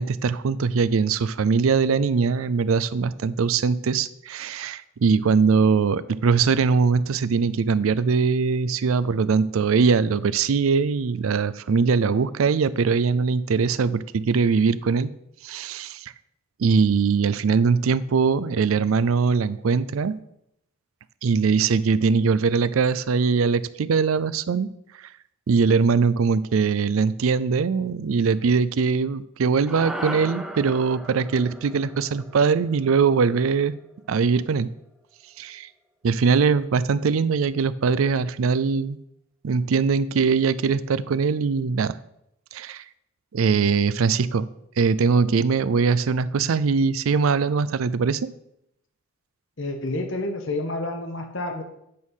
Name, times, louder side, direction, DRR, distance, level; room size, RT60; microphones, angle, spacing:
voice 1, 0.0-15.1 15.4-16.1 16.6-20.2 21.2-24.7 25.5-33.7 34.1-34.7 35.4-35.7 36.0-39.0 39.4-42.0 42.5-42.8 43.3-44.5 44.8-48.3, right 5 dB, 80° right, 16 dB, 0.4 m, -21 dB
sound 1, 29.7-34.1, right 1 dB, 5° right, 0.7 m, -37 dB
voice 2, 49.6-51.6, left 2 dB, 60° left, 5 dB, 1.1 m, -29 dB
8.5 x 5.5 x 6.3 m, 0.78 s
head